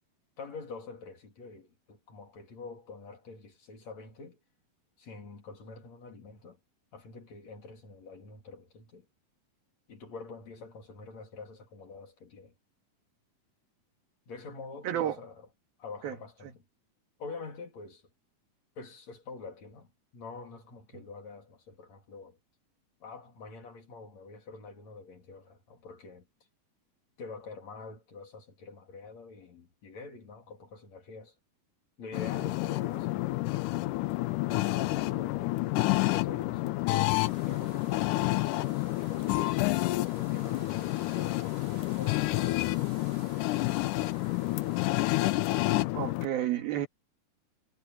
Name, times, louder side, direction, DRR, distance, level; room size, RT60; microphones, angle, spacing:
voice 1, 0.4-4.4 5.0-6.6 6.9-9.1 9.9-12.5 14.3-15.5 15.8-16.6 17.2-18.1 18.8-22.4 23.0-26.3 27.2-31.4 32.0-33.8 34.5-35.6 36.0-39.6 40.2-41.7 42.0-43.2, left 4 dB, 50° left, 4.1 m, -46 dB
voice 2, 14.8-15.2 16.0-16.2 20.9-21.0 45.9-46.9, right 11 dB, 80° right, 3.7 m, -31 dB
sound 1, 32.1-46.3, left 19 dB, 80° left, 1.8 m, -29 dB
sound 2, 37.0-45.4, right 5 dB, 40° right, 3.8 m, -53 dB
omnidirectional pair, 4.3 m